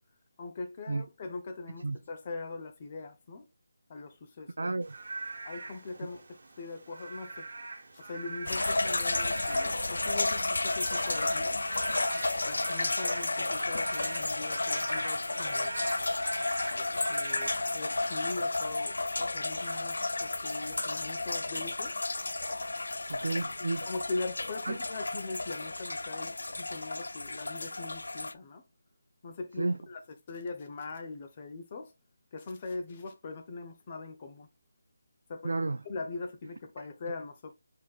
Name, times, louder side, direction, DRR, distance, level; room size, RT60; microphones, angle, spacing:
voice 1, 0.4-3.4 3.9-4.5 5.4-7.5 7.9-11.6 12.3-15.7 16.7-21.9 23.9-28.6 29.2-31.9 32.3-34.5 35.3-35.5 35.8-37.5, left 3 dB, 30° left, 0.7 m, -41 dB
voice 2, 4.6-5.0 23.1-23.9 24.6-24.7 29.6-29.8 35.4-35.8, right 2 dB, 75° right, 0.3 m, -31 dB
Frog / Rain, 4.8-18.3, right 3 dB, 60° right, 1.1 m, -42 dB
sound 1, 8.5-28.3, left 2 dB, 80° left, 0.4 m, -32 dB
4.3 x 3.7 x 2.4 m
figure-of-eight pair, 170°, 0 cm